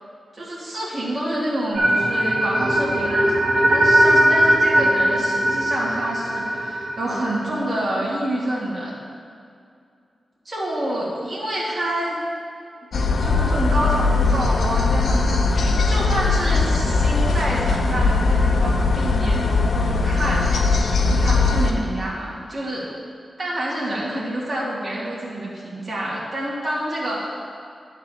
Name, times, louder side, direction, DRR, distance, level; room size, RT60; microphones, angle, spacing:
voice 1, 0.3-9.0 10.4-12.2 12.8-12.9 13.2-20.6 21.2-22.9 23.4-27.3, right 1 dB, 35° right, -8 dB, 2.3 m, -27 dB
sound 1, 1.7-7.9, right 1 dB, 65° right, 1.2 m, -19 dB
sound 2, 12.9-21.7, left 3 dB, 80° left, 0.7 m, -20 dB
10.0 x 4.1 x 7.6 m, 2.4 s
wide cardioid pair, 95°, 0 cm